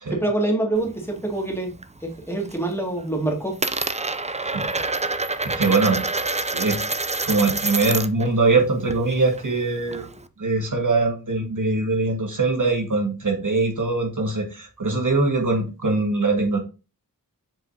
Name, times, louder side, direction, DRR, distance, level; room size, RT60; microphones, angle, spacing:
voice 1, 0.1-1.7 2.0-3.6, right 2 dB, 5° left, 0 dB, 2.2 m, -25 dB
Coin (dropping), 0.7-1.9 2.2-2.7 3.0-8.3 8.6-10.2, right 3 dB, 20° right, 0.5 m, -27 dB
voice 2, 5.4-6.0 6.5-6.8 7.2-10.1 10.4-16.6, right 3 dB, 60° right, 3 dB, 1.6 m, -22 dB
7.4 x 5.4 x 2.8 m, 0.30 s
wide cardioid pair, 75°, 35 cm